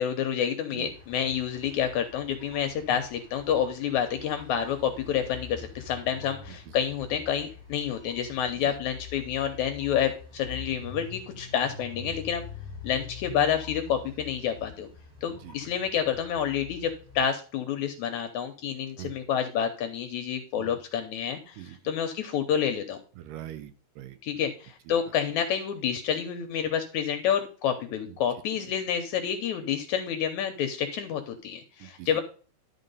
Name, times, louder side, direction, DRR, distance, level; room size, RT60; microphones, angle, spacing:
voice 1, 0.0-12.5 12.8-14.9 15.2-23.0 24.2-32.2, left 8 dB, 75° left, 7 dB, 1.8 m, -29 dB
sound 1, 0.9-17.2, left 5 dB, 65° right, 6.6 m, -45 dB
voice 2, 23.2-24.2 24.9-25.0 28.1-28.2 31.8-32.1, right 13 dB, 80° right, 11 dB, 2.2 m, -42 dB
11.5 x 4.0 x 5.3 m, 0.39 s
omnidirectional pair, 4.0 m